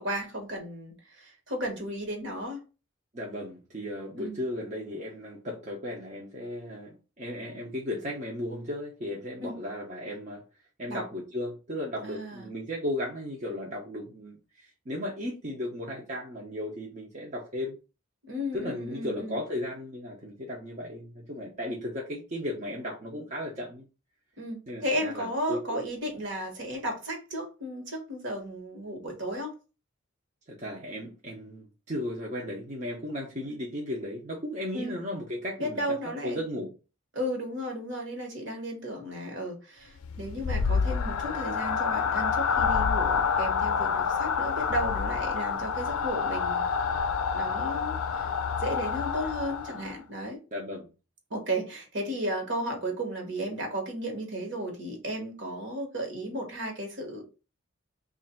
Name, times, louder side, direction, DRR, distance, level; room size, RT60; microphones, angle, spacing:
voice 1, 0.0-2.6 4.2-4.4 9.4-9.6 10.9-11.0 12.0-12.5 18.2-19.4 24.4-29.5 34.7-35.0 35.6-36.4 37.1-46.7 47.3-48.3 48.6-50.4 51.3-57.2, equal, 60° right, 1.3 m, -34 dB
voice 2, 3.1-10.4 10.8-17.8 18.5-23.8 24.7-25.8 30.5-36.7 50.5-50.9, left 1 dB, 35° right, 0.7 m, -35 dB
sound 1, 40.0-50.0, left 6 dB, 90° left, 0.4 m, -28 dB
3.2 x 2.5 x 4.3 m
head